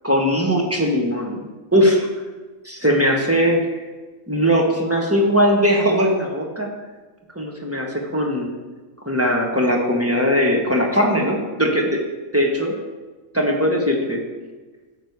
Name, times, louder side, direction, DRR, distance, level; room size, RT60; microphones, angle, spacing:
voice 1, 0.0-1.5 1.7-2.1 2.6-3.6 4.3-6.7 7.3-8.5 9.0-12.0 12.3-12.7 13.3-14.2, equal, 10° right, -1 dB, 1.2 m, -19 dB
10.5 x 6.5 x 4.7 m, 1.3 s
omnidirectional pair, 1.4 m